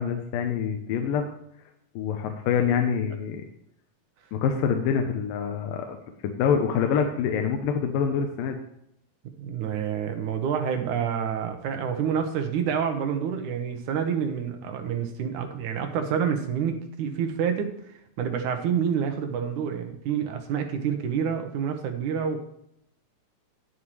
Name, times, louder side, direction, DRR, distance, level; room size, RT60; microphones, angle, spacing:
voice 1, 0.0-1.3 2.0-3.5 4.3-6.0 6.2-8.6, left 7 dB, 90° left, 4 dB, 2.6 m, -26 dB
voice 2, 9.4-17.7 18.2-22.4, right 7 dB, 70° right, 5 dB, 2.4 m, -28 dB
10.5 x 10.0 x 3.2 m, 0.76 s
omnidirectional pair, 3.9 m